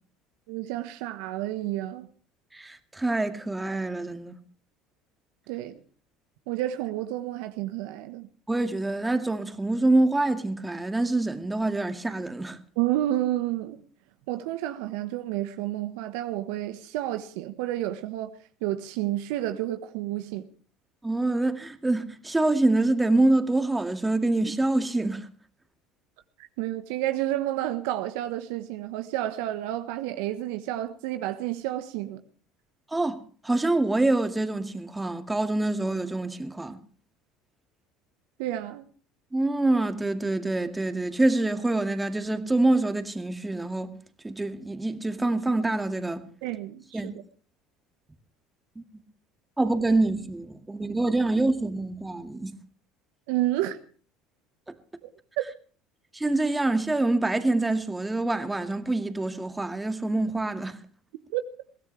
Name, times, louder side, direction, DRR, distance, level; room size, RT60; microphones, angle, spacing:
voice 1, 0.5-2.1 5.5-5.8 6.5-8.3 12.8-13.8 14.3-18.3 18.6-20.4 26.4-32.2 38.4-38.8 46.4-47.1 53.3-53.8 55.4-55.5 61.3-61.4, right 14 dB, 70° right, 1.2 m, -30 dB
voice 2, 2.5-4.4 8.5-12.6 21.0-25.3 32.9-36.8 39.3-43.9 44.2-46.2 46.9-47.1 49.6-52.6 56.1-60.8, right 2 dB, 10° right, 2.2 m, -26 dB
22.5 x 16.5 x 3.4 m
hypercardioid pair, 70°, 0 cm